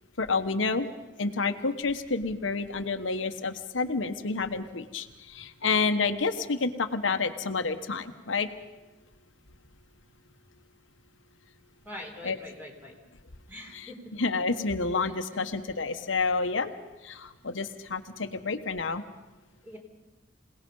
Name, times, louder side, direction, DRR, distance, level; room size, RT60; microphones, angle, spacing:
voice 1, 0.2-0.9 1.2-8.5 12.2-12.4 13.7-13.9 14.2-16.7 17.0-19.0, left 4 dB, 90° left, 7 dB, 1.2 m, -29 dB
voice 2, 11.8-12.9 13.5-14.1 15.0-15.2 15.7-15.8 19.6-19.8, left 1 dB, 10° right, 1 dB, 4.0 m, -44 dB
27.0 x 18.0 x 5.5 m, 1.1 s
head